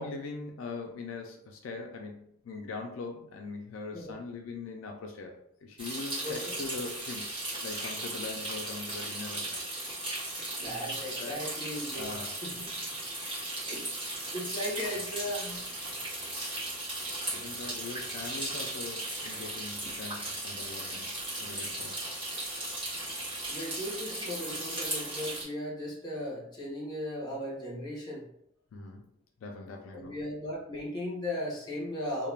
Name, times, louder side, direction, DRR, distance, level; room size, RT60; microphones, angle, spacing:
voice 1, 0.0-7.3 7.6-9.6 11.2-11.4 11.9-12.4 14.9-15.0 17.3-21.1 21.4-22.0 28.7-29.0 29.4-30.2, left 3 dB, 70° left, 3 dB, 0.3 m, -41 dB
sound 1, 5.8-25.4, right 1 dB, 25° right, 1.0 m, -37 dB
voice 2, 10.6-12.1 12.4-12.6 13.7-15.7 23.5-28.3 29.9-32.3, left 1 dB, 20° left, -4 dB, 0.8 m, -37 dB
2.3 x 2.1 x 3.2 m, 0.72 s
head